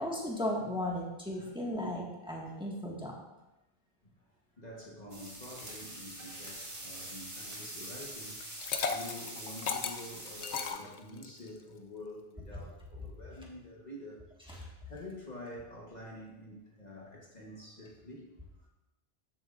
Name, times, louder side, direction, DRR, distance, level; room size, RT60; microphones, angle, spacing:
voice 1, 0.0-3.1 14.5-14.7, left 1 dB, 5° right, -4 dB, 1.7 m, -35 dB
voice 2, 1.3-1.6 4.0-18.3 18.6-18.7, left 1 dB, 40° left, -3 dB, 1.4 m, -48 dB
sound 1, 5.1-10.7, right 1 dB, 30° right, 1.7 m, -44 dB
Liquid, 8.4-11.5, left 6 dB, 85° left, 1.0 m, -36 dB
13.0 x 7.2 x 2.5 m, 0.98 s
omnidirectional pair, 1.1 m